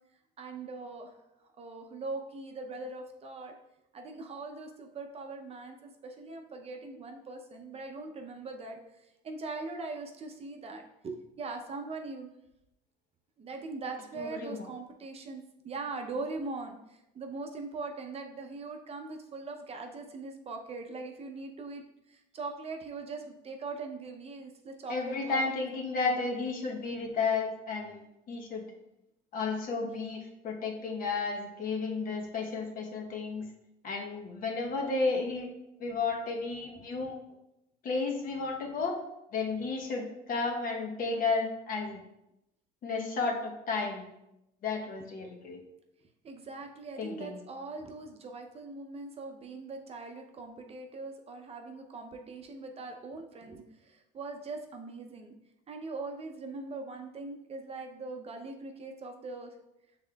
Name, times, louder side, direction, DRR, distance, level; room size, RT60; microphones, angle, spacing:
voice 1, 0.4-1.2 1.6-3.6 3.9-12.3 13.4-25.5 29.8-29.9 45.2-45.3 46.2-55.3 55.7-59.5, right 3 dB, 35° right, 4 dB, 0.6 m, -41 dB
voice 2, 14.2-14.7 24.9-28.0 28.3-28.6 29.3-33.4 33.8-35.5 35.8-37.2 37.8-39.0 39.3-42.0 42.8-44.1 44.6-45.6 47.0-47.4, left 4 dB, 55° left, 1 dB, 0.9 m, -32 dB
6.3 x 3.6 x 2.3 m, 0.87 s
cardioid pair, 110°, 17 cm